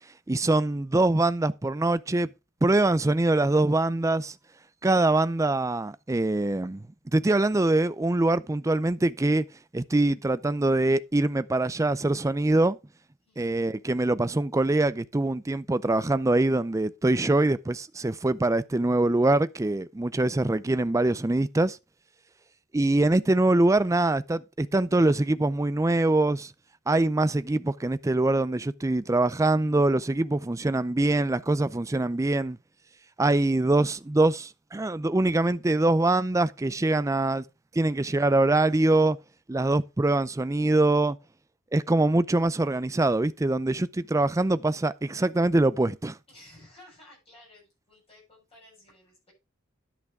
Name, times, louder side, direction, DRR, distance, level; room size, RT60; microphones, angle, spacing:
voice 1, 0.3-2.3 2.6-4.3 4.8-9.4 9.7-12.8 13.4-21.8 22.7-26.5 26.9-32.6 33.2-37.4 37.7-39.2 39.5-41.2 41.7-46.2, right 2 dB, 15° right, 0.4 m, -24 dB
voice 2, 46.3-49.3, left 1 dB, 30° left, 7.3 m, -54 dB
10.5 x 6.0 x 4.7 m
head